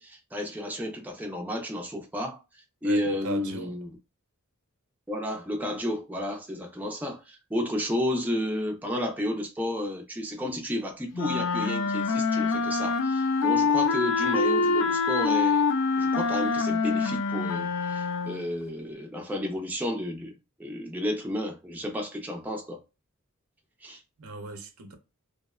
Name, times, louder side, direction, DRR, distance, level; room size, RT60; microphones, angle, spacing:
voice 1, 0.0-2.4 2.8-3.9 5.1-15.7 16.0-20.3 20.6-22.8 23.8-24.0, left 1 dB, 10° right, 0.4 m, -32 dB
voice 2, 2.8-3.7 24.2-24.9, right 2 dB, 70° right, 0.6 m, -37 dB
sound 1, 11.1-18.5, left 4 dB, 60° left, 0.4 m, -25 dB
2.6 x 2.1 x 2.3 m
head